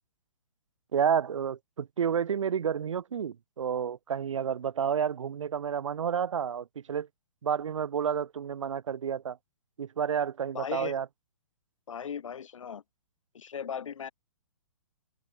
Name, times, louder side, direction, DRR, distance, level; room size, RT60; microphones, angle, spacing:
voice 1, 0.9-7.1 7.4-9.4 9.8-11.0, right 7 dB, 75° right, 1.7 m, -30 dB
voice 2, 10.5-10.9 11.9-12.8 13.3-14.1, left 7 dB, 80° left, 1.6 m, -37 dB
open air
hypercardioid pair, 165°, 16 cm